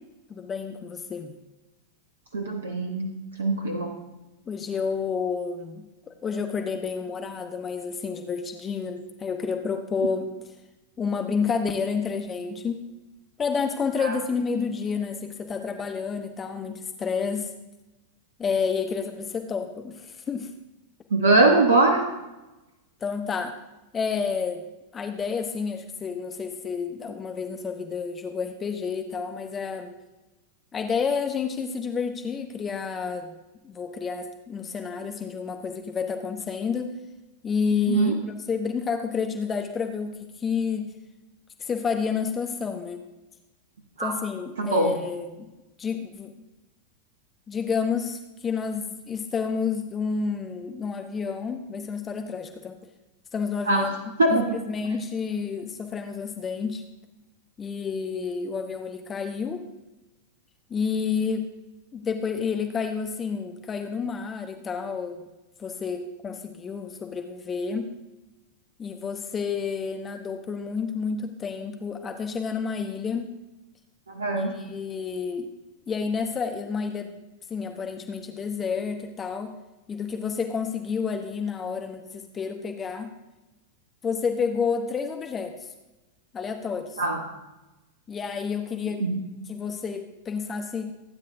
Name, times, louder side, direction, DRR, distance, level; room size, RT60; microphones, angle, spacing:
voice 1, 0.3-1.3 4.5-10.5 11.0-12.8 13.4-17.5 18.4-20.5 23.0-23.5 23.9-24.6 24.9-30.0 30.7-33.3 33.6-36.9 37.4-40.9 41.6-43.0 44.0-45.5 45.8-46.3 47.5-52.7 53.3-53.9 54.3-56.8 57.6-59.7 60.7-61.5 61.9-65.2 65.6-67.9 68.8-73.3 74.3-75.5 75.9-79.6 79.9-83.1 84.0-85.7 86.3-87.0 88.1-89.1 89.5-90.9, left 5 dB, 20° left, 6 dB, 0.8 m, -30 dB
voice 2, 2.3-3.1 3.4-3.9 14.0-14.1 21.1-22.0 37.9-38.2 44.0-44.2 44.6-44.9 53.7-53.9 54.2-54.6 74.1-74.5 87.0-87.2 89.0-89.2, right 2 dB, 70° right, 5 dB, 0.9 m, -22 dB
19.0 x 9.6 x 2.6 m, 1.0 s
figure-of-eight pair, 90°, 0 cm